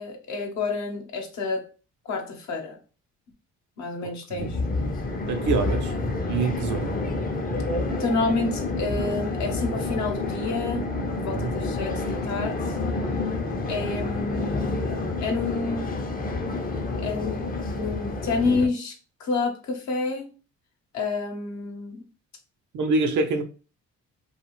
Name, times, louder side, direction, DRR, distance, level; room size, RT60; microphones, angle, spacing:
voice 1, 0.0-1.7 2.0-2.8 3.8-4.6 8.0-10.8 11.2-12.8 13.7-14.8 15.2-15.9 17.0-17.5 17.7-20.3 20.9-22.0, left 3 dB, 65° left, 0.8 m, -29 dB
sound 1, 4.4-18.7, left 3 dB, 30° left, 0.5 m, -29 dB
voice 2, 5.3-5.9 6.3-7.0 11.4-11.5 22.7-23.4, right 3 dB, 70° right, 0.6 m, -25 dB
2.4 x 2.3 x 2.9 m
cardioid pair, 90°, 30 cm